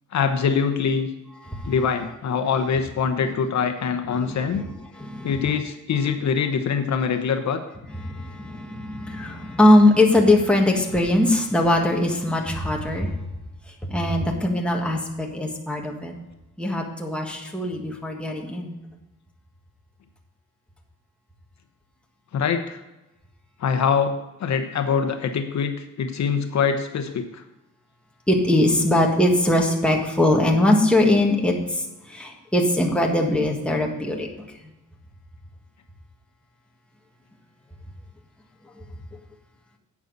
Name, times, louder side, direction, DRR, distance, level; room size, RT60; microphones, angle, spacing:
voice 1, 0.1-1.1 1.7-4.6 5.2-7.6 22.3-22.8 23.6-27.4, left 6 dB, 60° left, 6 dB, 1.0 m, -24 dB
voice 2, 4.2-4.7 5.0-5.4 8.0-13.1 13.9-16.1 16.6-18.7 28.3-34.3, left 1 dB, 5° left, -1 dB, 1.6 m, -21 dB
12.0 x 8.4 x 4.0 m, 1.0 s
wide cardioid pair, 160°, 32 cm